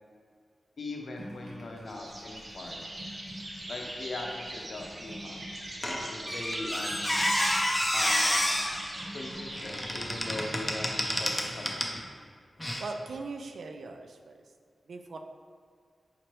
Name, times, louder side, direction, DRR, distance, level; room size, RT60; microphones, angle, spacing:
voice 1, 0.8-2.8 3.7-5.5 6.1-7.2 7.9-8.6 9.1-12.0, left 2 dB, 60° left, 0 dB, 0.6 m, -40 dB
sound 1, 1.2-10.9, equal, 60° right, 1.0 m, -49 dB
sound 2, 1.9-11.5, right 1 dB, 35° right, 0.6 m, -41 dB
Squeak, 5.8-12.0 12.6-12.8, left 1 dB, 15° left, 0.5 m, -29 dB
voice 2, 12.8-14.4 14.9-15.2, right 3 dB, 80° right, 4 dB, 0.3 m, -39 dB
5.0 x 2.9 x 3.1 m, 2.1 s
wide cardioid pair, 130°, 0 cm